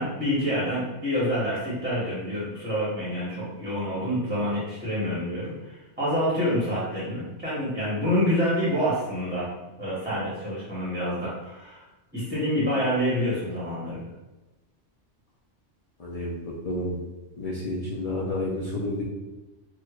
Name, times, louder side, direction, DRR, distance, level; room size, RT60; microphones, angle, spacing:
voice 1, 0.0-9.5 9.8-11.8 12.1-14.1, equal, 10° right, -8 dB, 0.8 m, -27 dB
voice 2, 16.0-17.0 17.4-19.0, left 1 dB, 55° left, -5 dB, 0.4 m, -30 dB
4.6 x 2.1 x 2.3 m, 1.1 s
omnidirectional pair, 1.3 m